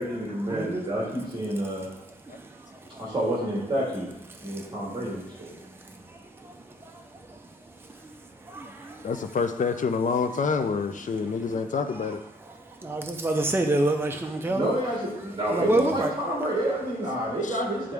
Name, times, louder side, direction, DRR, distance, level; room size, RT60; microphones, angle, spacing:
voice 1, 0.0-1.9 3.0-5.5 14.5-17.9, right 1 dB, 30° right, -6 dB, 1.8 m, -29 dB
voice 2, 0.5-0.8 12.8-14.7 15.5-16.1, right 2 dB, 15° right, 3 dB, 0.5 m, -25 dB
voice 3, 9.0-12.2 15.6-16.0 17.4-17.6, left 5 dB, 50° left, 8 dB, 0.5 m, -28 dB
10.5 x 3.7 x 3.4 m, 0.85 s
wide cardioid pair, 175°, 16 cm